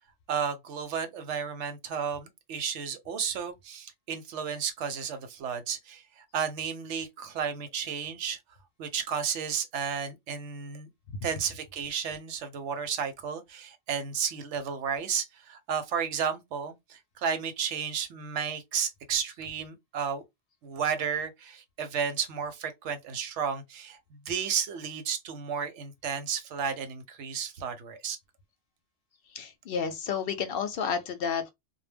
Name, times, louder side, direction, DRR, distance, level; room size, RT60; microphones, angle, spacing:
voice 1, 0.3-8.4 8.8-10.9 11.2-20.2 20.6-28.2, right 7 dB, 85° right, 1.0 m, -33 dB
voice 2, 29.3-31.5, left 6 dB, 65° left, 0.7 m, -31 dB
2.1 x 2.1 x 3.3 m
omnidirectional pair, 1.2 m